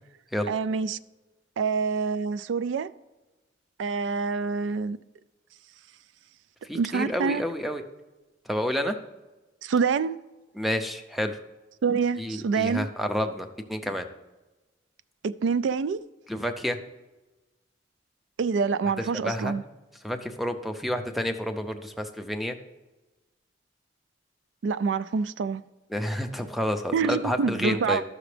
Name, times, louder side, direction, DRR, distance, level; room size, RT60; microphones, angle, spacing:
voice 1, 0.5-1.0 1.6-2.9 3.8-5.0 6.7-7.4 9.6-10.2 11.8-12.9 15.2-16.0 18.4-19.6 24.6-25.6 26.9-28.0, right 5 dB, 75° right, 0.3 m, -26 dB
voice 2, 6.6-7.8 8.5-9.0 10.5-11.4 12.2-14.1 16.3-16.8 19.2-19.5 20.0-22.6 25.9-28.0, equal, ahead, 0.5 m, -29 dB
12.5 x 6.0 x 3.3 m
head